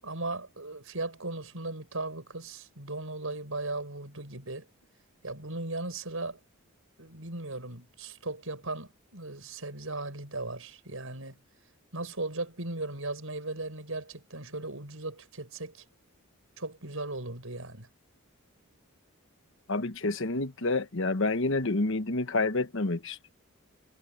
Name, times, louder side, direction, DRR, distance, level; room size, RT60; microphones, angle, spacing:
voice 1, 0.0-4.7 5.2-6.4 7.0-11.4 11.9-15.8 16.6-17.9, right 2 dB, 70° right, 6.9 m, -37 dB
voice 2, 19.7-23.3, left 2 dB, 60° left, 1.2 m, -28 dB
head